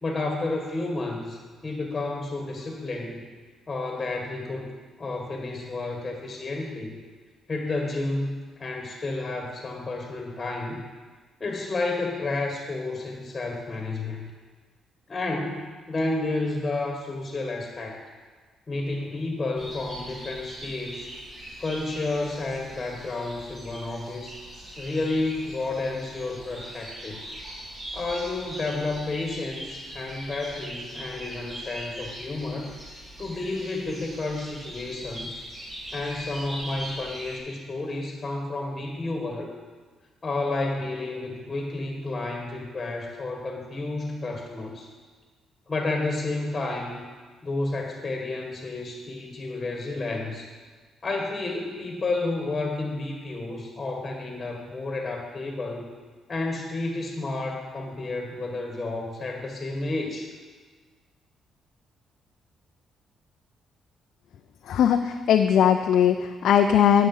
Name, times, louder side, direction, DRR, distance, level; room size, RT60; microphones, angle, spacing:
voice 1, 0.0-3.2 3.7-4.7 5.0-6.9 7.5-10.8 11.4-14.3 15.1-18.0 18.7-21.1 21.6-24.4 24.8-27.2 27.9-32.7 33.2-35.4 35.9-39.5 40.2-44.9 45.7-47.0 47.4-50.5 51.0-55.9 56.3-60.3, left 2 dB, 30° left, 1 dB, 1.8 m, -31 dB
sound 1, 19.6-37.4, equal, 30° right, 4.2 m, -41 dB
voice 2, 64.7-67.1, left 9 dB, 75° left, 5 dB, 0.5 m, -19 dB
16.5 x 6.8 x 5.6 m, 1.4 s
cardioid pair, 90°, 0 cm